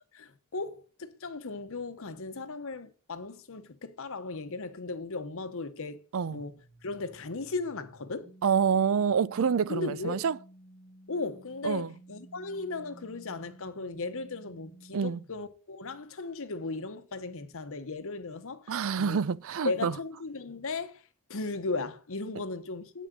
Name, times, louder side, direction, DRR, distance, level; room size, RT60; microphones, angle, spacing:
voice 1, 0.1-6.0 6.3-8.3 9.7-10.2 11.1-19.2 19.6-21.0 21.3-23.1, left 3 dB, 65° left, 1.0 m, -36 dB
sound 1, 6.3-15.6, right 2 dB, 15° left, 1.1 m, -54 dB
voice 2, 8.4-10.4 11.6-11.9 14.9-15.2 18.7-20.0, right 6 dB, 65° right, 0.5 m, -27 dB
8.7 x 6.2 x 6.6 m
head